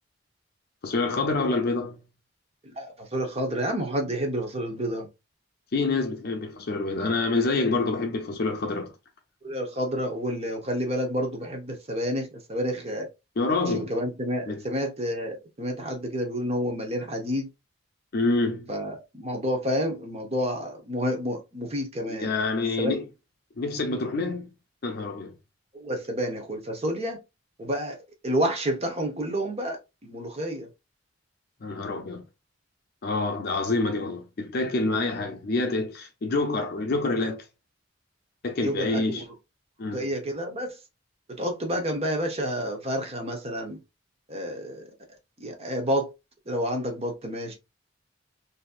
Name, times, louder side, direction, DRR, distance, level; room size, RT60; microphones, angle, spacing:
voice 1, 0.8-2.0 5.7-8.9 13.4-13.9 14.5-14.6 18.1-18.7 22.1-23.1 23.6-24.5 24.8-25.3 31.6-32.3 33.0-37.5 38.4-39.2 39.8-40.1, left 3 dB, 55° left, 0.5 m, -27 dB
voice 2, 2.6-5.1 9.4-13.1 13.7-17.5 18.7-22.3 22.8-22.9 25.7-27.2 27.6-30.7 38.6-39.3 39.9-40.8 41.4-43.8 44.3-44.9 45.4-46.1 46.5-47.6, equal, 35° right, 0.9 m, -29 dB
3.9 x 2.7 x 2.3 m
head